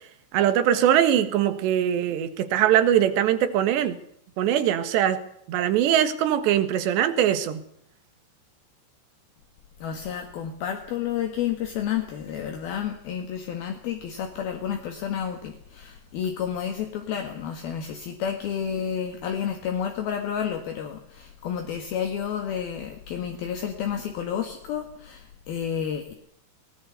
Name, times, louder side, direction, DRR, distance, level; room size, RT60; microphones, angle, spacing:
voice 1, 0.3-4.0 4.4-5.2 5.5-7.6, right 10 dB, 85° right, 3.8 m, -22 dB
voice 2, 9.8-26.1, left 8 dB, 65° left, 3.6 m, -30 dB
20.0 x 19.5 x 8.1 m
omnidirectional pair, 4.9 m